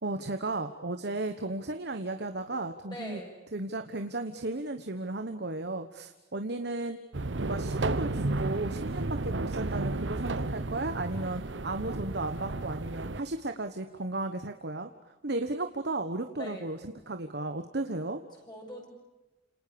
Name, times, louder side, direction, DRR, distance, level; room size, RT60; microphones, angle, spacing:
voice 1, 0.0-3.2 3.5-7.0 7.3-14.9 15.2-18.2, right 2 dB, 60° right, 7 dB, 1.3 m, -34 dB
voice 2, 2.9-3.3 16.3-16.7 18.4-18.9, left 1 dB, 25° left, 0 dB, 7.5 m, -42 dB
sound 1, 7.1-13.2, right 2 dB, 80° right, 1.0 m, -32 dB
29.5 x 27.5 x 7.0 m, 1.0 s
head